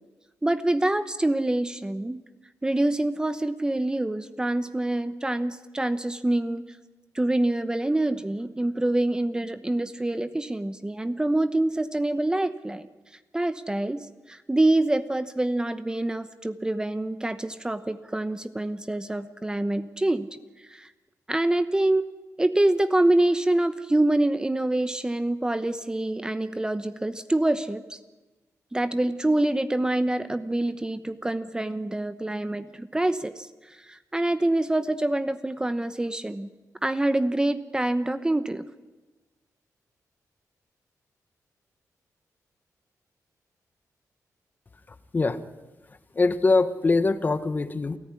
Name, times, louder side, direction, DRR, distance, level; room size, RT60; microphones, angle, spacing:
voice 1, 0.4-2.2 2.6-6.6 7.1-12.9 13.3-20.3 20.7-20.9 21.3-22.0 22.4-28.0 28.7-33.5 33.8-36.5 36.8-38.6, right 1 dB, 10° right, 12 dB, 0.9 m, -26 dB
voice 2, 46.1-48.0, left 3 dB, 30° left, 12 dB, 1.1 m, -23 dB
28.5 x 14.5 x 9.9 m, 1.2 s
wide cardioid pair, 125°, 6 cm